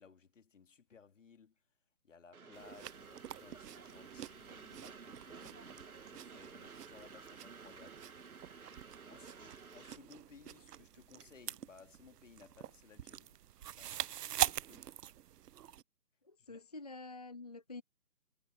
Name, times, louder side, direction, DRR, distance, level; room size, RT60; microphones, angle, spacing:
voice 1, 0.0-1.6 2.0-8.6 8.9-15.0 16.5-16.6, left 6 dB, 55° left, 3.0 m, -61 dB
Train, 2.3-10.0, right 5 dB, 65° right, 3.1 m, -53 dB
sound 1, 2.5-15.8, right 11 dB, 85° right, 0.5 m, -44 dB
voice 2, 16.2-17.8, left 3 dB, 25° left, 0.7 m, -48 dB
hypercardioid pair, 165°, 46 cm